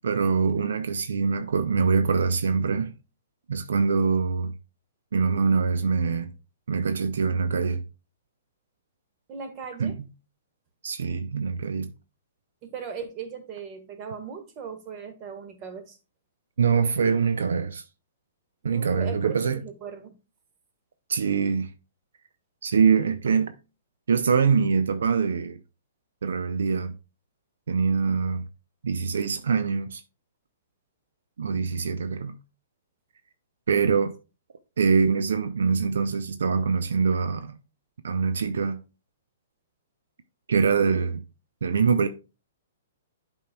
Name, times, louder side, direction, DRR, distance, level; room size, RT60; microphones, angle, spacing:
voice 1, 0.0-2.9 3.5-4.5 5.1-6.3 6.7-7.8 9.8-10.1 10.8-11.9 16.6-17.8 18.6-19.6 21.1-21.7 22.6-23.5 24.1-25.6 26.2-26.9 27.7-28.4 28.8-30.0 31.4-32.4 33.7-34.1 34.8-37.6 38.0-38.8 40.5-41.2 41.6-42.1, right 5 dB, 70° right, 0.5 m, -24 dB
voice 2, 9.3-10.0 12.6-16.0 18.6-20.1, right 6 dB, 35° right, 1.6 m, -38 dB
11.0 x 4.5 x 2.2 m
figure-of-eight pair, 115°, 0 cm